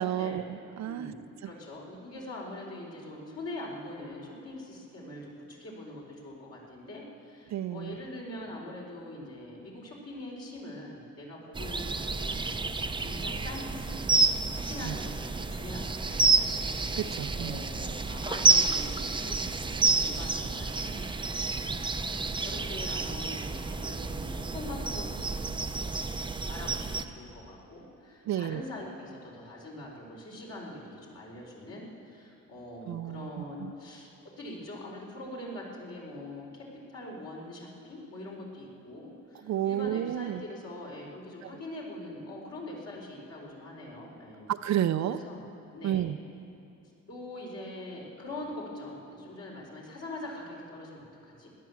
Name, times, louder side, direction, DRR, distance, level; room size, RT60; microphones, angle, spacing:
voice 1, 0.0-1.1 1.4-1.5 7.5-8.0 14.8-15.0 17.0-17.6 28.3-28.6 32.9-33.7 39.4-40.4 41.4-41.5 44.5-45.2 45.8-46.2, right 11 dB, 65° right, 12 dB, 0.6 m, -31 dB
voice 2, 0.9-5.3 5.6-7.0 7.7-9.7 10.0-12.4 13.0-13.7 14.5-16.6 17.3-21.0 21.6-21.8 22.4-25.0 25.3-25.8 26.5-27.8 28.3-28.9 29.4-30.8 31.1-31.9 32.5-34.1 34.4-36.4 36.9-37.6 37.9-39.1 39.6-44.5 45.1-45.4 45.7-46.1 47.1-49.0 49.2-51.0, left 1 dB, 55° left, -3 dB, 4.5 m, -42 dB
sound 1, 11.6-27.0, right 3 dB, 15° right, 0.6 m, -29 dB
17.0 x 11.0 x 7.2 m, 2.7 s
cardioid pair, 90°, 30 cm